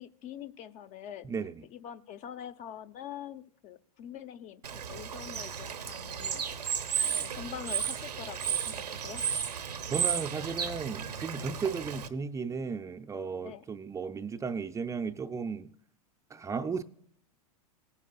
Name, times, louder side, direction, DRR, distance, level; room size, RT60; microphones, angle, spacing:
voice 1, 0.0-1.3 1.7-6.4 7.0-9.2 13.4-13.6, left 10 dB, 35° left, 0.7 m, -44 dB
voice 2, 1.2-1.7 9.9-15.7 16.3-16.8, right 5 dB, 15° right, 0.5 m, -35 dB
Bird / Water, 4.6-12.1, right 8 dB, 85° right, 0.9 m, -34 dB
18.0 x 9.8 x 2.4 m
hypercardioid pair, 95°, 20 cm